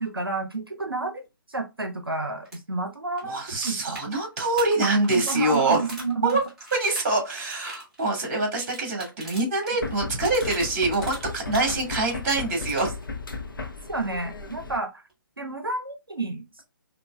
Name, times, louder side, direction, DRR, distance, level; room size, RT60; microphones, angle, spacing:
voice 1, 0.0-1.2 1.5-4.0 5.1-6.3 10.1-10.2 13.9-15.0 15.4-16.6, right 3 dB, 85° right, 6 dB, 0.6 m, -30 dB
sound 1, 2.4-2.6 2.9-3.0 3.2-9.7 10.0-11.8 12.1-13.0 15.1-15.2, equal, 5° right, 1.5 m, -41 dB
voice 2, 3.2-5.8 6.2-6.4 6.7-12.9, right 2 dB, 35° right, 2 dB, 1.9 m, -25 dB
sound 2, 9.8-14.8, left 3 dB, 70° left, 0.7 m, -35 dB
5.2 x 2.4 x 2.2 m, 0.25 s
figure-of-eight pair, 135°, 12 cm